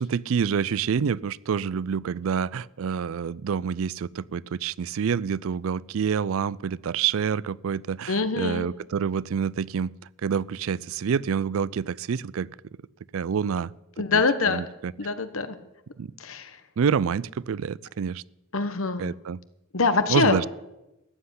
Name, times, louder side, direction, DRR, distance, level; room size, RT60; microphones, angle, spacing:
voice 1, 0.0-9.9 10.2-12.5 13.1-13.7 14.1-14.9 16.0-16.1 16.8-18.2 19.0-19.4 20.1-20.5, right 7 dB, 70° right, 22 dB, 0.4 m, -27 dB
voice 2, 8.1-8.7 14.0-14.6 15.0-15.6 16.2-16.5 18.5-19.1 19.7-20.4, left 4 dB, 70° left, 10 dB, 1.2 m, -24 dB
14.0 x 7.8 x 9.8 m, 0.93 s
head